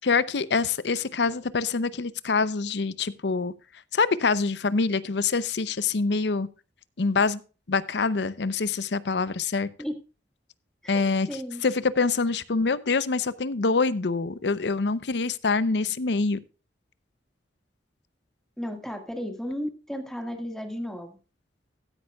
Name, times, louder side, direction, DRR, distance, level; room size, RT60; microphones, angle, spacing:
voice 1, 0.0-3.5 3.9-6.5 7.0-7.4 7.7-9.7 10.9-11.3 11.6-16.4, left 4 dB, 70° left, 0.7 m, -25 dB
voice 2, 10.8-11.6 18.6-21.2, equal, 5° left, 1.7 m, -34 dB
15.0 x 9.7 x 2.3 m
head